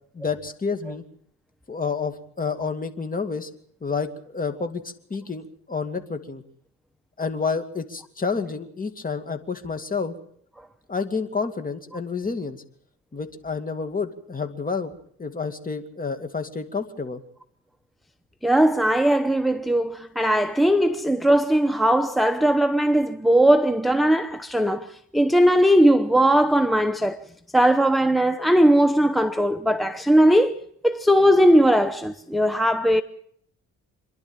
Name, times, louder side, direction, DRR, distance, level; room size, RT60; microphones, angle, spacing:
voice 1, 0.1-1.0 1.7-3.5 3.8-6.4 7.2-10.2 10.9-12.6 13.1-14.9 15.2-17.2, left 5 dB, 30° left, 2.5 m, -29 dB
voice 2, 18.4-27.2 27.5-33.0, equal, ahead, 0.9 m, -19 dB
27.5 x 11.5 x 8.9 m
cardioid pair, 90°, 30 cm